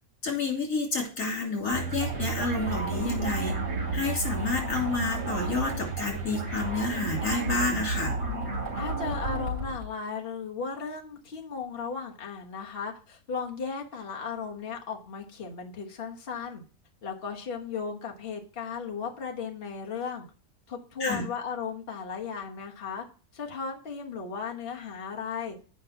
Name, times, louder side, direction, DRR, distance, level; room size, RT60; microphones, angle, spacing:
voice 1, 0.2-3.6 3.9-8.2 21.0-21.2, left 3 dB, 65° left, 0 dB, 3.4 m, -29 dB
sound 1, 1.7-9.9, right 3 dB, 55° right, 3.6 m, -32 dB
voice 2, 8.7-16.6 17.0-20.3 20.7-23.0 23.3-25.6, left 5 dB, 40° left, 1 dB, 1.5 m, -36 dB
8.1 x 5.5 x 5.8 m, 0.38 s
omnidirectional pair, 1.5 m